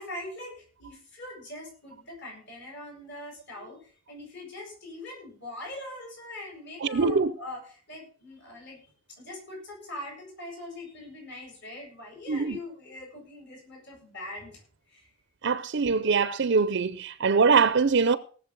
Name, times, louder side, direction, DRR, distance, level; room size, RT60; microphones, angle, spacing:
voice 1, 0.0-15.1, left 1 dB, 55° left, 7.8 m, -42 dB
voice 2, 6.8-7.3 12.3-12.6 15.4-18.2, right 5 dB, 55° right, 0.5 m, -23 dB
18.5 x 7.2 x 6.0 m
head